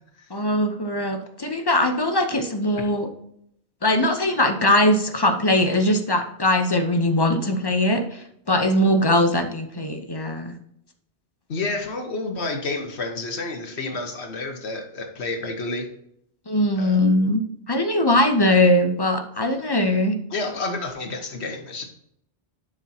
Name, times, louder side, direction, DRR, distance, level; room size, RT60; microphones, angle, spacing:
voice 1, 0.3-3.1 3.8-10.5 16.5-17.4 17.7-20.1, left 1 dB, 25° left, 7 dB, 0.6 m, -21 dB
voice 2, 11.5-15.9 16.8-17.0 20.3-21.8, left 3 dB, 70° left, 4 dB, 1.4 m, -29 dB
11.0 x 4.9 x 2.8 m, 0.73 s
omnidirectional pair, 1.2 m